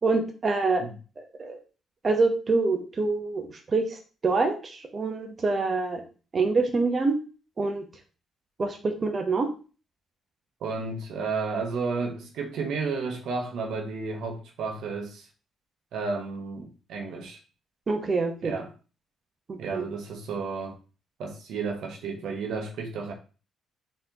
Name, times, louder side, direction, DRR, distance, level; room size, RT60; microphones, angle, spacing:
voice 1, 0.0-0.8 1.2-1.6 2.0-6.0 6.3-7.2 7.6-7.9 8.6-9.5 17.9-18.6 19.5-19.9, right 3 dB, 40° right, 0.9 m, -26 dB
voice 2, 10.6-15.3 15.9-17.4 18.4-18.7 19.6-20.8 21.2-23.1, right 4 dB, 80° right, 0.9 m, -32 dB
4.1 x 3.9 x 2.9 m
cardioid pair, 90°, 0 cm